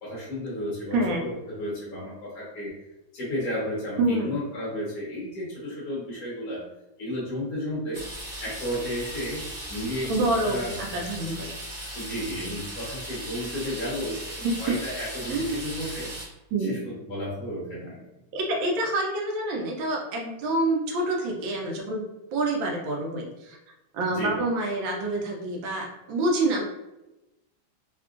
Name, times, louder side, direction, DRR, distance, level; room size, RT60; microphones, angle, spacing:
voice 1, 0.0-2.7 3.1-6.6 7.0-8.0 8.4-9.4 9.7-10.8 11.9-14.3 14.6-16.1 16.6-18.0 24.1-24.3, equal, 55° left, -6 dB, 1.1 m, -33 dB
voice 2, 0.9-1.2 4.0-4.3 10.1-11.5 14.4-14.8 15.3-15.6 16.5-16.8 18.3-22.0 22.3-23.6 23.9-26.6, right 2 dB, 75° right, 0 dB, 1.4 m, -27 dB
sound 1, 7.9-16.2, equal, 55° right, 0.6 m, -37 dB
3.6 x 2.3 x 2.4 m, 0.97 s
omnidirectional pair, 2.2 m